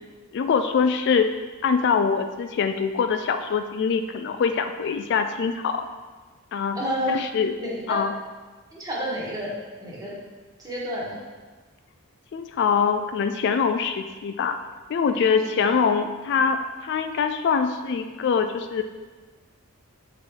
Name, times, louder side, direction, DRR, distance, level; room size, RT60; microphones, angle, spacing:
voice 1, 0.3-1.3 1.6-5.9 6.5-6.8 7.1-7.5 7.9-8.1 12.3-14.6 14.9-18.8, left 6 dB, 50° left, 7 dB, 0.3 m, -23 dB
voice 2, 6.7-7.2 7.6-8.0 8.7-9.5 9.8-10.1 10.6-11.2 15.1-15.4 15.7-15.8, equal, 15° right, -5 dB, 1.4 m, -30 dB
7.8 x 4.3 x 3.7 m, 1.4 s
head